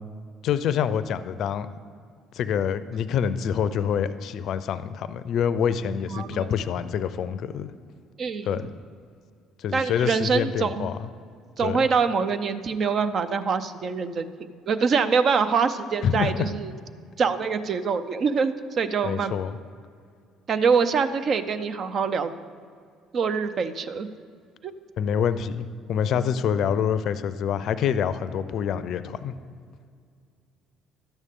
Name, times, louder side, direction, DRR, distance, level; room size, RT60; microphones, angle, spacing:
voice 1, 0.4-1.7 2.3-7.7 8.5-8.7 9.6-10.9 11.6-11.8 16.0-16.5 19.0-19.6 25.0-29.3, left 8 dB, 65° left, 13 dB, 0.4 m, -26 dB
voice 2, 6.1-6.5 8.2-8.7 9.7-10.9 11.6-14.3 14.7-16.7 17.2-19.3 20.5-22.3 23.1-24.1 24.6-24.7, right 5 dB, 50° right, 11 dB, 0.6 m, -24 dB
12.0 x 8.1 x 3.7 m, 2.2 s
supercardioid pair, 65°, 0 cm